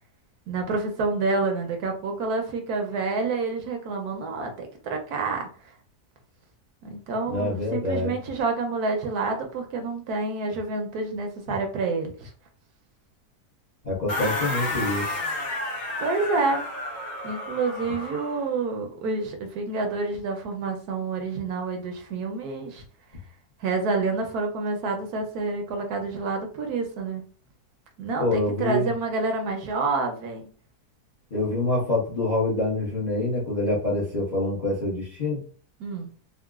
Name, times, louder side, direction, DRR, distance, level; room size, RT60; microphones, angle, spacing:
voice 1, 0.5-5.5 6.8-12.3 16.0-16.6 17.2-22.8 23.6-27.2 28.0-30.5 35.8-36.1, right 3 dB, 75° right, 3 dB, 1.1 m, -28 dB
voice 2, 7.3-8.1 13.8-15.1 28.2-28.9 31.3-35.4, left 2 dB, 35° left, -5 dB, 0.7 m, -26 dB
sound 1, 14.1-18.5, left 1 dB, 55° left, 1.3 m, -31 dB
3.7 x 2.1 x 2.3 m, 0.42 s
omnidirectional pair, 1.8 m